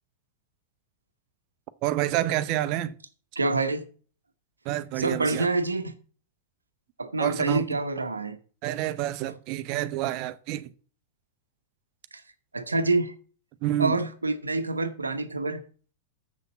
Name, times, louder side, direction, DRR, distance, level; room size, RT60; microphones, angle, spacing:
voice 1, 1.8-2.9 4.6-5.5 7.2-7.8 8.6-10.7 13.6-13.9, right 14 dB, 45° right, 0.8 m, -28 dB
voice 2, 3.4-3.8 5.0-5.9 7.0-8.4 12.1-12.2 12.5-13.1 13.8-15.6, right 2 dB, 90° right, 1.0 m, -27 dB
7.4 x 6.7 x 7.3 m
figure-of-eight pair, 95°, 0 cm